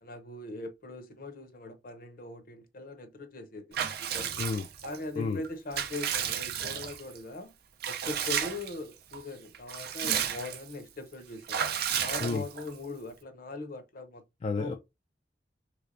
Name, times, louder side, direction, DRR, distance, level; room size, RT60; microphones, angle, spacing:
voice 1, 0.0-4.4 4.8-7.5 7.9-11.6 12.0-14.2 14.6-14.7, left 2 dB, 55° left, 0.7 m, -41 dB
Water / Bathtub (filling or washing) / Liquid, 3.7-5.0 5.4-7.2 7.8-8.8 9.1-9.2 9.5-10.7 11.5-12.8, right 8 dB, 60° right, 0.5 m, -32 dB
voice 2, 14.4-14.7, left 4 dB, 35° left, 0.3 m, -31 dB
3.3 x 3.3 x 2.5 m
head